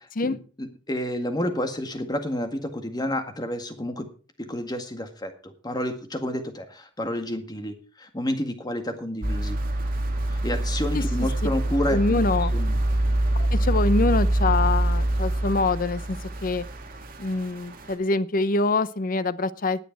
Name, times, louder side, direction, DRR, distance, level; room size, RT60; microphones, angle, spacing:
voice 1, 0.0-4.1 4.4-9.6 10.3-12.2 12.5-12.8, left 1 dB, 20° left, 6 dB, 1.8 m, -30 dB
sound 1, 9.2-17.5 17.9-18.0, right 1 dB, 50° right, 2.5 m, -25 dB
voice 2, 10.9-11.5 11.9-12.5 13.3-16.7 17.2-19.8, left 3 dB, 50° left, 15 dB, 0.7 m, -25 dB
20.0 x 6.8 x 4.6 m, 0.37 s
head